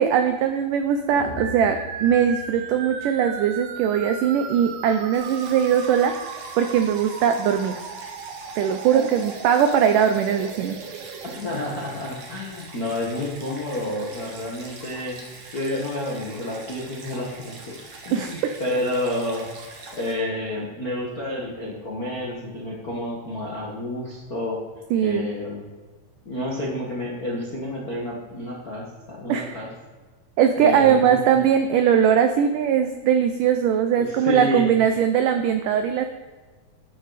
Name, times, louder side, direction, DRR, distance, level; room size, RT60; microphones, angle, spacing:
voice 1, 0.0-7.8 8.6-10.8 18.1-18.4 24.9-25.3 29.3-29.6 30.4-36.0, right 8 dB, 90° right, 7 dB, 1.8 m, -20 dB
sound 1, 1.1-3.4, left 2 dB, 85° left, 3.8 m, -39 dB
sound 2, 1.4-11.4, right 6 dB, 70° right, 2.6 m, -37 dB
Stream, 5.1-20.1, right 3 dB, 50° right, 2.3 m, -43 dB
voice 2, 11.3-15.2 15.5-17.8 18.0-19.5 20.0-24.6 25.0-25.7 26.2-29.7 30.6-31.2 34.0-34.7, left 1 dB, 55° left, -4 dB, 0.9 m, -29 dB
12.5 x 9.5 x 4.1 m, 1.3 s
omnidirectional pair, 4.6 m